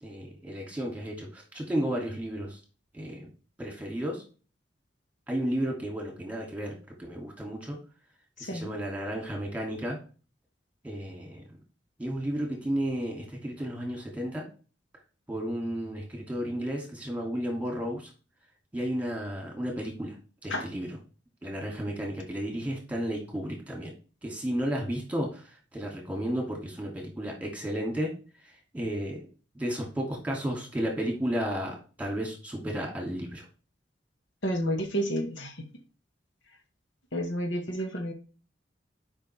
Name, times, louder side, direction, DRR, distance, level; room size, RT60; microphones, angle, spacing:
voice 1, 0.0-2.6 2.9-3.3 3.6-4.2 5.3-7.8 8.4-10.0 10.8-11.4 12.0-14.4 15.3-18.1 18.7-20.2 20.4-20.9 21.4-23.9 24.2-28.1 28.4-29.2 29.5-33.5, equal, 10° right, 0 dB, 2.5 m, -33 dB
voice 2, 8.4-8.7 20.5-20.6 34.4-35.6 37.1-38.1, equal, 80° left, 5 dB, 1.6 m, -30 dB
11.0 x 5.5 x 3.4 m, 0.36 s
head